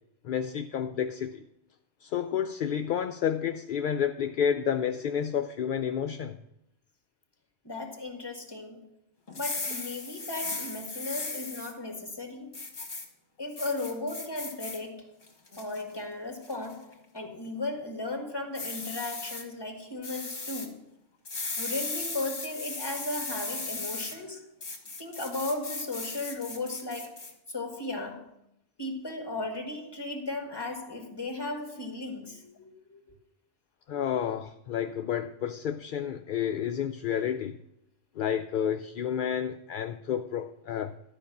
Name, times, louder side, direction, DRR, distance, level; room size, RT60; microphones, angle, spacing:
voice 1, 0.2-1.4 2.0-6.4 33.9-37.6 38.2-40.9, left 8 dB, 60° left, 0.6 m, -30 dB
voice 2, 7.6-8.9 9.4-12.6 13.4-15.1 15.6-20.8 21.6-24.4 25.0-28.3 28.8-33.0, left 2 dB, 20° left, 1.7 m, -36 dB
sound 1, 9.3-11.7 12.5-13.1 13.6-14.8 15.2-15.8 16.4-16.7 18.5-19.4 20.0-20.7 21.3-24.2 24.6-27.3, left 3 dB, 45° left, 1.7 m, -37 dB
12.5 x 5.2 x 7.1 m
omnidirectional pair, 1.2 m